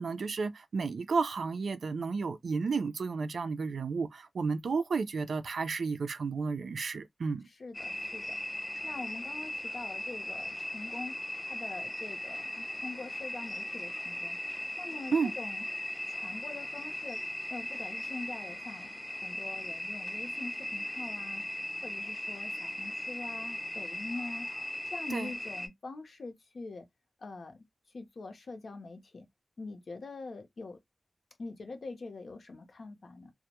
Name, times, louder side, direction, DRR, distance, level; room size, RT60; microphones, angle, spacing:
voice 1, 0.0-7.5 15.1-15.3 25.1-25.3, right 4 dB, 80° right, 0.3 m, -32 dB
voice 2, 7.5-8.4 8.8-11.1 11.4-14.4 14.8-15.6 16.1-17.2 17.5-21.4 21.8-24.5 24.9-26.9 27.2-27.6 27.9-29.3 29.6-30.8 31.4-33.3, left 3 dB, 65° left, 0.6 m, -44 dB
sound 1, 7.7-25.7, left 1 dB, 15° left, 0.5 m, -38 dB
2.1 x 2.0 x 2.9 m
wide cardioid pair, 120°, 0 cm